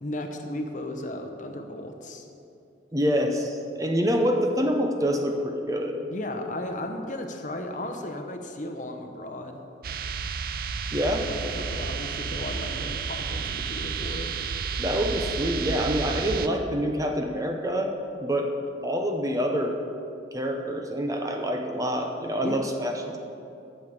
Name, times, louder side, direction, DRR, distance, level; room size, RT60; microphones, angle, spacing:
voice 1, 0.0-2.3 6.1-9.6 11.1-14.3 22.4-22.6, left 1 dB, 40° left, 4 dB, 0.9 m, -35 dB
voice 2, 2.9-6.0 10.9-11.2 14.8-17.9 18.2-18.5 18.8-19.8 20.3-23.2, equal, 20° right, 3 dB, 0.7 m, -26 dB
sound 1, 9.8-16.5, right 5 dB, 50° right, 0.5 m, -31 dB
9.1 x 6.7 x 8.0 m, 2.7 s
head